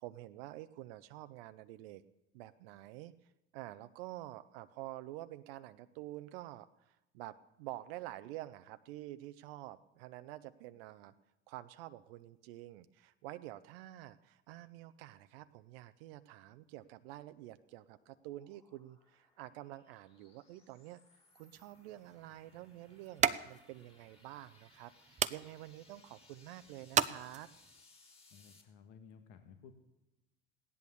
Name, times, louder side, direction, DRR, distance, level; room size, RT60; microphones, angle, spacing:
voice 1, 0.0-2.0 2.3-11.1 11.5-21.0 21.3-27.5, right 15 dB, 65° right, 11 dB, 0.7 m, -49 dB
sound 1, 16.9-28.6, left 3 dB, 20° left, 3.4 m, -66 dB
sound 2, 21.5-27.8, right 7 dB, 20° right, 0.6 m, -38 dB
voice 2, 28.3-29.7, left 6 dB, 60° left, 6 dB, 1.6 m, -56 dB
16.5 x 11.0 x 7.0 m, 0.94 s
hypercardioid pair, 75°, 32 cm